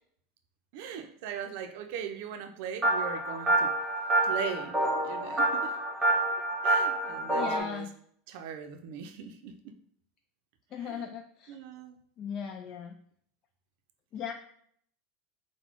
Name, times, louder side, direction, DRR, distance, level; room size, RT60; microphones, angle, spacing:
voice 1, 0.7-3.7 4.2-4.8 5.0-5.8 6.6-7.9 8.3-9.7 10.8-11.2 11.5-12.0, right 7 dB, 65° right, 6 dB, 0.5 m, -39 dB
sound 1, 2.8-7.6, right 1 dB, 10° right, 1.2 m, -27 dB
voice 2, 7.3-7.9 10.7-11.6 12.2-13.0 14.1-14.3, left 7 dB, 40° left, 4 dB, 0.4 m, -38 dB
4.0 x 2.1 x 4.4 m, 0.65 s
supercardioid pair, 125°, 0 cm